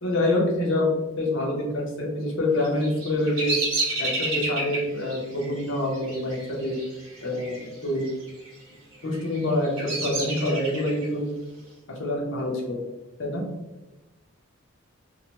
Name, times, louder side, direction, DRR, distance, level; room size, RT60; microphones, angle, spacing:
voice 1, 0.0-0.9 1.2-3.5 4.0-6.8 7.2-8.1 9.0-11.2 12.0-12.8 13.2-13.4, left 1 dB, 65° left, -3 dB, 0.8 m, -26 dB
Bird vocalization bird call bird song, 2.6-7.6 7.9-8.5 9.1-11.1, right 2 dB, 65° right, 1.0 m, -31 dB
2.7 x 2.1 x 2.9 m, 1.0 s
head